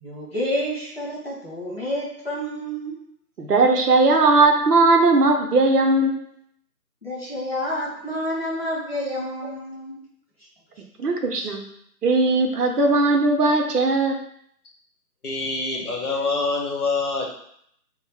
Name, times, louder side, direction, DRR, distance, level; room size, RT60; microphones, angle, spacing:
voice 1, 0.0-3.0 7.0-10.0, equal, 40° left, -5 dB, 0.5 m, -29 dB
voice 2, 3.4-6.3 11.0-11.6 12.0-14.2, right 3 dB, 70° right, 3 dB, 0.6 m, -18 dB
voice 3, 15.2-17.3, left 3 dB, 60° left, 0 dB, 0.8 m, -26 dB
2.3 x 2.0 x 3.2 m, 0.69 s
figure-of-eight pair, 160°, 49 cm